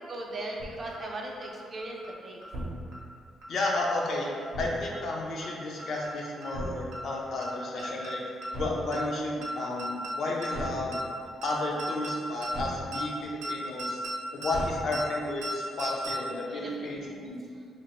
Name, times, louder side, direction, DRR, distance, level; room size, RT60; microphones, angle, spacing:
voice 1, 0.1-2.4 16.5-17.3, right 2 dB, 40° right, -1 dB, 0.4 m, -39 dB
sound 1, 0.6-0.7 0.9-1.0 1.4-1.5 1.8-2.1 2.4-2.7 2.9-3.0 3.4-3.5 3.8-4.1 4.4-4.7 4.9-5.0 5.4-5.5 5.8-6.1 6.4-6.7 6.9-7.0 7.4-7.5 7.8-8.1 8.4-8.7 8.9-9.0 9.4-9.5 9.8-10.1 10.4-10.7 10.9-11.0 11.4-11.5 11.8-12.1 12.4-12.6 12.9-13.0 13.4-13.5 13.8-14.1 14.4-14.7 14.9-15.0 15.4-15.5 15.8-16.1, right 1 dB, 85° right, 0.6 m, -35 dB
voice 2, 3.5-8.2 8.5-11.1 11.4-14.0 14.3-17.4, left 2 dB, 65° left, -2 dB, 0.5 m, -32 dB
2.9 x 2.0 x 2.9 m, 2.2 s
cardioid pair, 90°, 0 cm